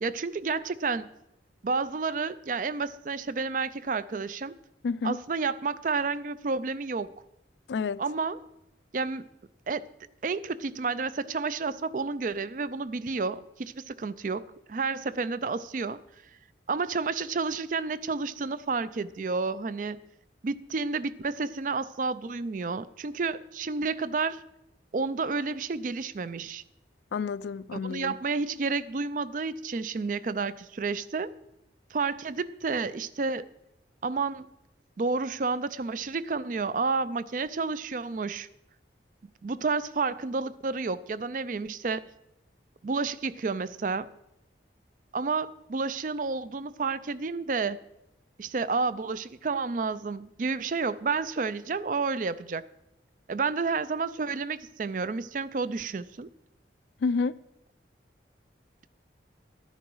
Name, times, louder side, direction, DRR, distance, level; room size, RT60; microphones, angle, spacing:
voice 1, 0.0-1.1 1.6-4.5 5.0-7.1 8.0-8.4 8.9-9.2 9.7-9.8 10.2-16.0 16.7-20.0 20.4-24.4 24.9-26.6 27.7-31.3 31.9-33.5 34.0-34.5 35.0-38.5 39.4-42.0 42.8-44.1 45.1-47.8 48.4-52.7 53.3-56.3, right 4 dB, 45° right, 0.4 m, -30 dB
voice 2, 4.8-5.2 7.7-8.0 27.1-28.1 57.0-57.4, left 4 dB, 75° left, 0.4 m, -29 dB
12.0 x 10.0 x 4.7 m
head